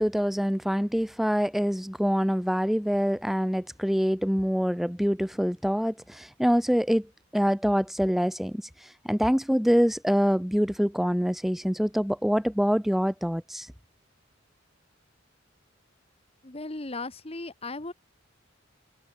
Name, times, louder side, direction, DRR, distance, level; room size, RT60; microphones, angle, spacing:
voice 1, 0.0-7.1 7.3-13.7, equal, ahead, 0.8 m, -25 dB
voice 2, 16.4-17.9, left 2 dB, 30° left, 1.5 m, -36 dB
head